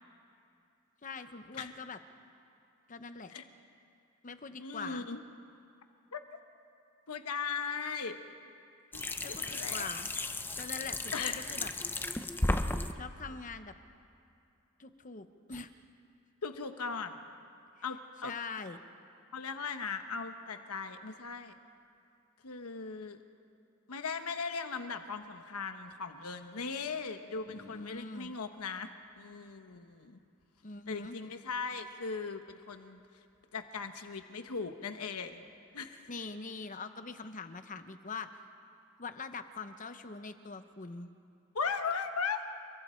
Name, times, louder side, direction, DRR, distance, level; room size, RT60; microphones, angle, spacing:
voice 1, 1.0-2.0 2.9-3.3 4.2-5.1 9.2-11.7 12.9-13.7 14.8-15.7 18.2-18.8 27.5-28.3 30.6-31.1 36.1-38.3 39.0-41.1, left 4 dB, 35° left, 9 dB, 0.9 m, -43 dB
voice 2, 4.6-5.2 6.1-6.2 7.1-8.2 8.9-9.9 11.1-11.4 16.4-17.2 17.8-18.3 19.3-21.6 22.4-23.2 23.9-28.9 29.2-30.2 30.9-33.0 33.5-35.5 35.7-36.1 41.5-42.4, left 5 dB, 85° left, 7 dB, 1.1 m, -38 dB
sound 1, 8.9-12.9 15.5-15.6, left 2 dB, 10° left, 0.6 m, -34 dB
28.5 x 22.5 x 4.5 m, 2.6 s
head